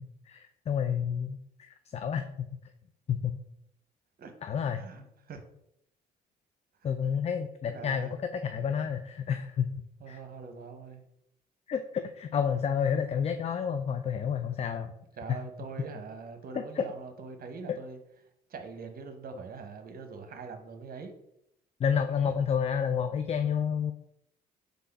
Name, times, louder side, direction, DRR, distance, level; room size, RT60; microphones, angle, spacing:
voice 1, 0.3-2.5 3.1-3.4 4.4-4.8 6.8-9.7 10.1-10.2 11.7-14.9 15.3-15.4 16.8-16.9 21.8-23.9, left 7 dB, 30° left, 8 dB, 0.4 m, -30 dB
voice 2, 4.7-5.4 7.0-7.1 7.7-8.1 10.0-11.0 15.2-18.0 18.5-21.1, right 5 dB, 45° right, 6 dB, 0.8 m, -43 dB
3.8 x 3.5 x 3.9 m, 0.78 s
hypercardioid pair, 50°, 21 cm